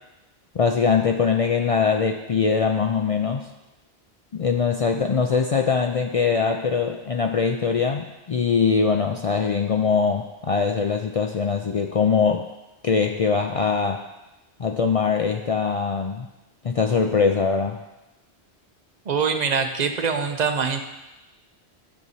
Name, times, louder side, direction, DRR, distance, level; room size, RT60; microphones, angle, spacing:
voice 1, 0.5-3.5 4.3-12.5 12.8-14.1 14.6-16.3 16.6-17.8, left 5 dB, 65° left, 4 dB, 0.3 m, -22 dB
voice 2, 19.1-20.8, right 5 dB, 50° right, 6 dB, 0.7 m, -23 dB
12.0 x 6.5 x 2.8 m, 1.0 s
omnidirectional pair, 1.1 m